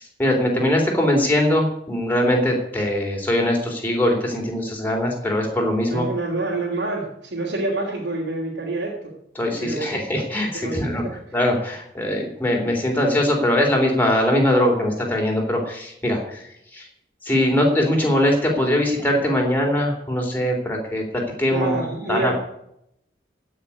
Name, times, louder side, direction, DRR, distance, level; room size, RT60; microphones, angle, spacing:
voice 1, 0.0-6.1 9.4-11.0 11.3-16.9 17.2-21.8 22.1-22.3, left 1 dB, 10° left, 0 dB, 3.7 m, -21 dB
voice 2, 5.9-9.1 9.6-9.9 10.5-11.2 21.5-22.3, right 2 dB, 90° right, -4 dB, 3.3 m, -27 dB
16.0 x 6.4 x 9.7 m, 0.78 s
head